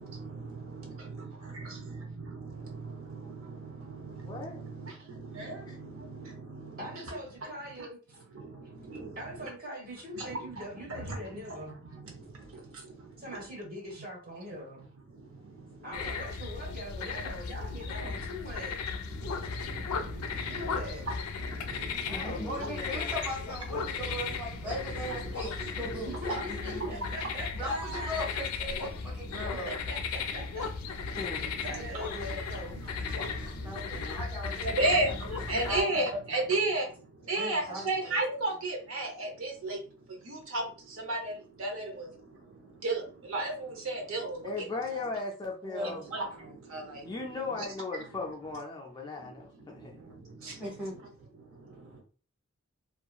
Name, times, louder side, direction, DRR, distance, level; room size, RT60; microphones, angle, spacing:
voice 1, 0.0-7.0 8.3-9.2 10.2-10.6 11.0-11.2 11.5-11.6 11.9-13.2 15.5-15.9 17.8-18.2 18.6-18.7 19.1-21.1 21.4-22.4 23.7-24.3 25.1-26.4 26.8-26.9 29.3-29.4 30.3-30.4 31.0-31.8 32.7-34.1 34.6-44.6 45.8-47.2 47.5-47.7 47.9-48.0 49.2-50.6 51.4-52.0, right 2 dB, 70° right, 0.7 m, -36 dB
voice 2, 4.2-4.6 5.4-5.8 22.0-23.1 31.2-31.6 34.0-34.2 44.4-46.0 47.0-49.9, left 3 dB, 20° left, 0.3 m, -38 dB
voice 3, 6.8-8.0 9.1-11.8 13.2-14.9 15.8-18.8 20.5-21.1 26.0-28.1 29.5-30.7 31.6-32.8, equal, 40° right, 1.2 m, -42 dB
sound 1, 15.9-35.8, left 5 dB, 90° left, 0.4 m, -36 dB
voice 4, 22.1-26.1 26.5-27.0 27.5-29.7 33.1-36.1 37.3-38.2 45.6-46.0 50.6-51.0, equal, 5° right, 1.3 m, -39 dB
2.8 x 2.3 x 2.3 m
head